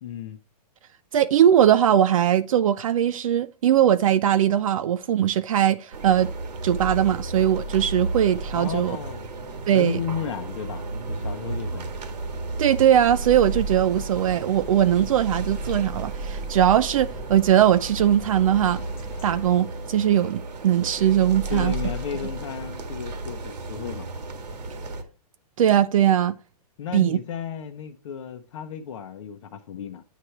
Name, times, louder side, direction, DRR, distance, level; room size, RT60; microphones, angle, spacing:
voice 1, 0.0-0.4 8.5-9.3 9.7-11.9 21.5-24.1 26.8-30.0, left 8 dB, 50° left, 0.8 m, -34 dB
voice 2, 1.1-6.3 6.6-9.0 9.7-10.0 12.6-18.8 19.2-21.7 25.6-26.4 26.9-27.2, right 10 dB, 55° right, 0.4 m, -20 dB
sound 1, 5.9-25.0, right 2 dB, 85° right, 1.7 m, -33 dB
sound 2, 12.9-19.5, left 1 dB, 10° left, 0.6 m, -42 dB
9.2 x 3.2 x 5.7 m
hypercardioid pair, 160°, 21 cm